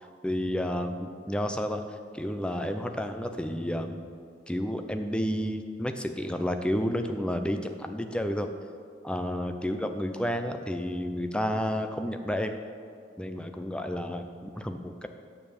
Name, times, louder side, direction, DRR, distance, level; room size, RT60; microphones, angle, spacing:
voice 1, 0.0-1.8 2.1-4.0 4.5-8.5 9.0-12.5 13.2-15.1, equal, 5° left, 6 dB, 0.6 m, -31 dB
9.5 x 7.0 x 7.2 m, 2.1 s
head